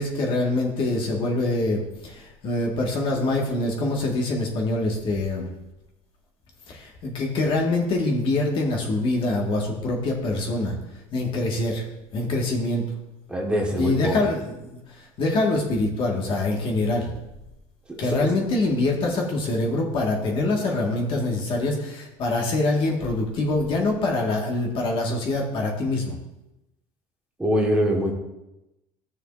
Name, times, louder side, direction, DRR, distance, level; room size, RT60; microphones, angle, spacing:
voice 1, 0.0-5.5 6.7-10.8 11.1-11.8 12.1-12.8 13.8-17.1 18.0-26.2, left 2 dB, 50° left, 0 dB, 1.7 m, -25 dB
voice 2, 13.3-14.1 17.9-18.2 27.4-28.1, equal, 10° right, -1 dB, 1.5 m, -23 dB
14.0 x 6.5 x 2.6 m, 0.94 s
cardioid pair, 130°, 12 cm